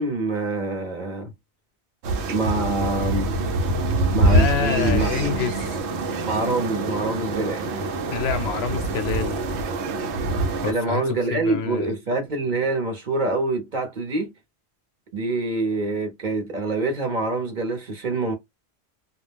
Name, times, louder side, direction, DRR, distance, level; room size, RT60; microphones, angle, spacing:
voice 1, 0.0-1.3 2.3-3.4 4.1-5.4 6.3-7.6 10.6-14.3 15.1-18.3, right 2 dB, 50° right, 0.8 m, -25 dB
sound 1, 2.0-10.7, right 2 dB, 90° right, 0.9 m, -24 dB
voice 2, 4.3-5.7 8.1-9.4 10.6-11.9, left 6 dB, 70° left, 0.8 m, -27 dB
2.3 x 2.1 x 3.2 m
omnidirectional pair, 1.1 m